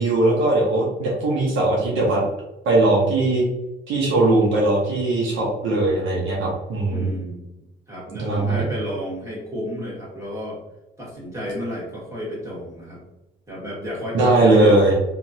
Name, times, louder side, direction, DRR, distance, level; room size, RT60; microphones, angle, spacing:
voice 1, 0.0-2.3 2.6-3.5 3.9-7.1 8.2-8.6 14.1-14.9, right 2 dB, 80° right, -3 dB, 0.9 m, -19 dB
voice 2, 6.9-7.4 7.9-10.6 11.0-13.0 13.5-14.9, left 1 dB, 15° right, -5 dB, 1.5 m, -31 dB
2.9 x 2.4 x 2.7 m, 0.95 s
cardioid pair, 90°, 20 cm